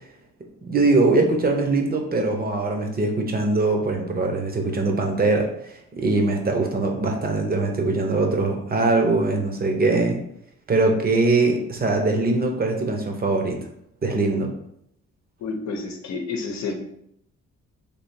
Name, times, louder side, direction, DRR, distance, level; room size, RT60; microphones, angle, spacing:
voice 1, 0.6-5.5 5.9-10.2 10.7-13.6 14.0-14.5, right 3 dB, 30° right, 3 dB, 0.9 m, -22 dB
voice 2, 15.4-16.7, left 4 dB, 65° left, 3 dB, 0.8 m, -29 dB
3.4 x 2.7 x 4.3 m, 0.74 s
cardioid pair, 90°, 30 cm